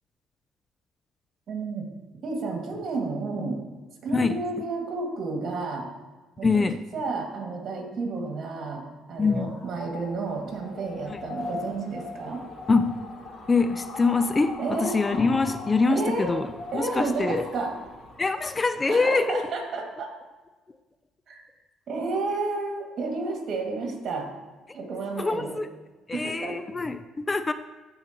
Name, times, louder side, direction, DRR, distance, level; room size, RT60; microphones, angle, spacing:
voice 1, 1.5-1.9 2.2-3.6 4.0-5.9 6.4-6.5 6.9-12.4 14.6-15.0 15.9-16.3 16.7-17.8 18.9-20.1 21.3-21.4 21.9-24.3 24.7-25.6 26.1-26.6, right 3 dB, 55° right, 1 dB, 2.1 m, -31 dB
voice 2, 6.4-6.8 9.2-9.5 11.1-11.2 12.7-13.0 13.5-17.4 18.2-19.5 24.7-24.8 25.2-25.7 26.1-27.5, left 4 dB, 25° left, 11 dB, 0.4 m, -24 dB
sound 1, 9.3-19.0, left 3 dB, 45° left, 2.1 m, -40 dB
14.0 x 4.7 x 3.0 m, 1.2 s
supercardioid pair, 70°, 0 cm